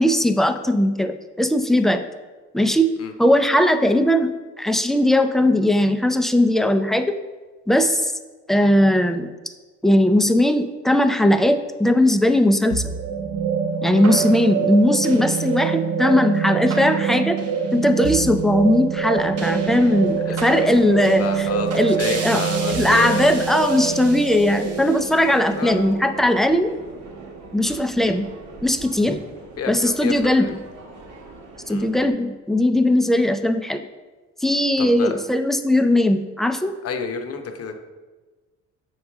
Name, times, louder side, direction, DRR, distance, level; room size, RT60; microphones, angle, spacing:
voice 1, 0.0-2.0 2.5-2.9 3.2-4.3 4.6-7.2 7.7-8.1 8.5-9.3 9.8-12.9 13.8-17.4 17.7-21.5 21.7-22.4 22.7-26.7 27.5-28.3 28.6-29.2 29.7-30.6 31.7-33.8 34.4-36.7, left 1 dB, ahead, 8 dB, 0.3 m, -19 dB
sound 1, 12.7-27.1, right 6 dB, 55° right, 0.8 m, -25 dB
Subway metro underground, 19.0-32.1, right 3 dB, 75° right, 1.1 m, -39 dB
voice 2, 21.2-23.2 25.6-25.8 27.6-27.8 29.6-30.6 31.7-31.9 34.8-35.1 36.8-37.7, left 5 dB, 55° left, 5 dB, 0.8 m, -30 dB
6.4 x 4.8 x 3.5 m, 1.3 s
cardioid pair, 90°, 30 cm